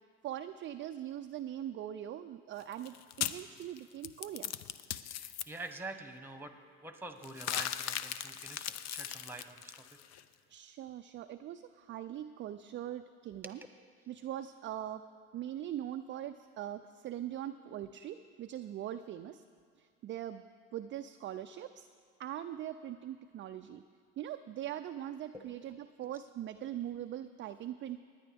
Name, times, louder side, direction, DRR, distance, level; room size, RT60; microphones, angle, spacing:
voice 1, 0.2-4.5 10.5-13.6 14.1-15.1 15.3-19.4 19.8-20.4 20.7-21.9 22.2-23.8 24.2-28.0, right 11 dB, 35° right, 8 dB, 0.4 m, -41 dB
sound 1, 2.6-5.4 7.2-10.2, left 11 dB, 50° left, 0.6 m, -38 dB
voice 2, 5.1-6.5 6.8-10.0 13.4-13.5 25.3-25.5, right 2 dB, 5° right, 7 dB, 1.2 m, -46 dB
20.0 x 9.6 x 3.5 m, 2.1 s
supercardioid pair, 85°, 34 cm